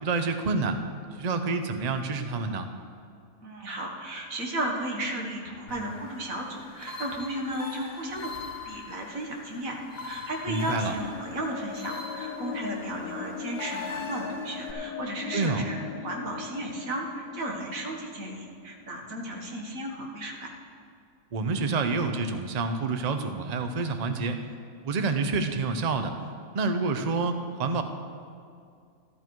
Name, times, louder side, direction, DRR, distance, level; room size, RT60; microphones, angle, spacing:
voice 1, 0.0-0.8 1.1-2.7 10.5-10.9 15.3-15.7 21.3-24.5 24.8-26.1 26.5-27.8, right 3 dB, 40° right, 7 dB, 0.6 m, -28 dB
voice 2, 3.4-9.8 10.0-15.8 16.0-20.5, right 1 dB, 60° right, 0 dB, 1.9 m, -34 dB
sound 1, 5.7-14.7, left 4 dB, 45° left, 1.4 m, -42 dB
sound 2, 11.0-19.1, left 7 dB, 90° left, 1.2 m, -39 dB
13.0 x 13.0 x 4.7 m, 2.3 s
omnidirectional pair, 1.6 m